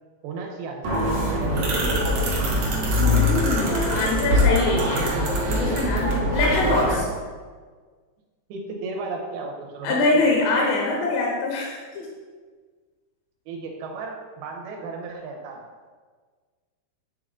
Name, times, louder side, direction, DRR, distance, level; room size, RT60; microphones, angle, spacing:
voice 1, 0.2-2.3 6.7-6.8 8.5-10.0 13.5-15.6, right 4 dB, 85° right, 1 dB, 2.7 m, -35 dB
sound 1, 0.8-6.9, equal, 60° right, 1.8 m, -22 dB
voice 2, 3.0-7.1 9.8-12.1, left 3 dB, 75° left, -2 dB, 2.3 m, -24 dB
9.1 x 3.6 x 3.7 m, 1.5 s
omnidirectional pair, 4.5 m